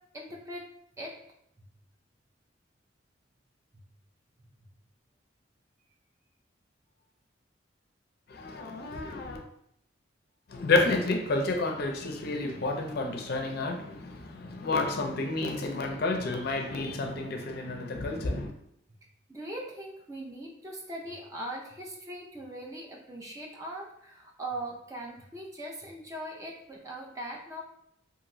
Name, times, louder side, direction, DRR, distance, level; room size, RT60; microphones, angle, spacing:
voice 1, 0.1-0.6 1.0-1.1 19.3-27.6, right 1 dB, 15° right, 0.4 m, -40 dB
voice 2, 8.3-9.4 10.5-18.5, left 2 dB, 55° left, 0.4 m, -30 dB
2.9 x 2.5 x 2.6 m
head